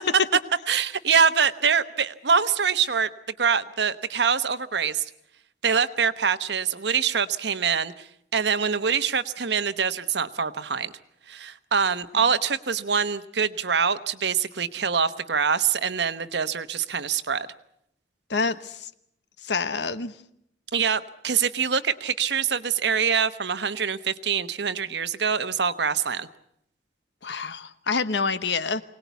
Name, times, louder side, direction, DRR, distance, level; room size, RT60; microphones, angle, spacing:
voice 1, 0.7-3.1 3.4-5.0 5.6-8.1 8.3-10.9 11.3-17.5 20.7-26.3, right 6 dB, 75° right, 12 dB, 1.0 m, -24 dB
voice 2, 18.3-18.9 19.4-20.1 27.2-28.8, left 4 dB, 75° left, 13 dB, 1.0 m, -27 dB
24.5 x 19.0 x 8.3 m, 0.75 s
head